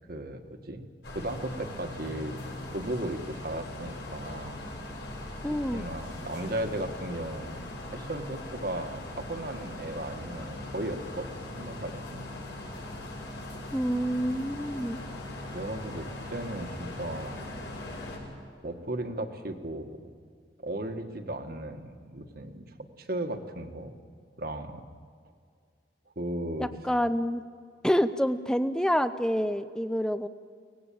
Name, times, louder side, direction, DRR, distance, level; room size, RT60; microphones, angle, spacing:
voice 1, 0.0-2.4 2.7-4.6 5.7-12.3 15.4-17.5 18.6-20.0 20.6-22.7 23.0-23.9 24.4-24.8 26.2-26.7, right 1 dB, 55° right, 6 dB, 1.8 m, -36 dB
sound 1, 1.0-18.2, left 1 dB, 90° left, 6.7 m, -40 dB
voice 2, 5.4-5.8 13.7-15.0 26.6-27.4 27.8-30.3, equal, 5° left, 11 dB, 0.6 m, -27 dB
24.0 x 18.5 x 8.7 m, 2.1 s
head